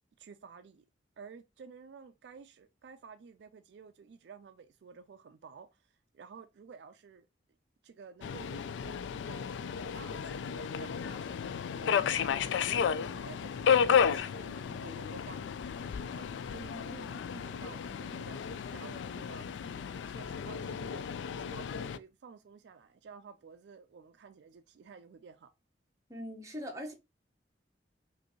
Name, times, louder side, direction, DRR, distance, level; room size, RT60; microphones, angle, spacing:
voice 1, 0.2-0.8 1.2-7.3 7.8-19.5 20.1-25.5, right 5 dB, 70° right, 0.4 m, -52 dB
Subway metro underground, 8.2-22.0, left 7 dB, 90° left, 0.3 m, -33 dB
voice 2, 26.1-26.9, equal, 20° right, 1.0 m, -40 dB
5.3 x 2.6 x 2.8 m
head